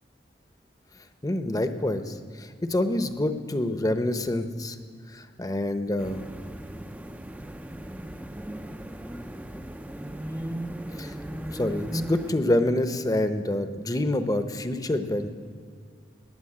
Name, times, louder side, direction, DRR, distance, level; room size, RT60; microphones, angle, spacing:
voice 1, 1.2-4.8 5.1-6.2 11.0-15.3, left 1 dB, 20° left, 9 dB, 0.8 m, -27 dB
sound 1, 6.0-12.3, right 1 dB, 10° right, 0.5 m, -36 dB
18.5 x 7.0 x 9.6 m, 2.1 s
head